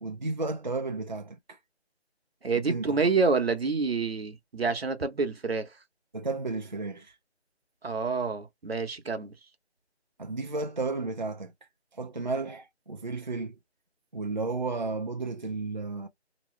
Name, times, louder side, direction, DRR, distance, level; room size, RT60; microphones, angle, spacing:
voice 1, 0.0-1.6 2.7-2.9 6.1-7.1 10.2-11.5 11.9-13.6 14.1-16.1, right 3 dB, 45° right, 0.4 m, -33 dB
voice 2, 2.4-5.7 7.8-9.3, right 4 dB, 65° right, 1.0 m, -28 dB
3.0 x 2.2 x 3.1 m
figure-of-eight pair, 170°, 34 cm